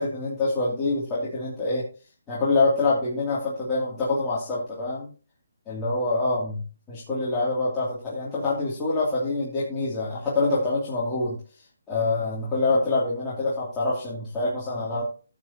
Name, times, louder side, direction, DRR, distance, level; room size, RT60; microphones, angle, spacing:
voice 1, 0.0-1.8 2.3-5.1 5.7-6.6 6.9-11.4 11.9-15.0, left 3 dB, 15° left, -8 dB, 2.6 m, -25 dB
15.0 x 8.0 x 2.8 m, 0.36 s
hypercardioid pair, 160°, 0 cm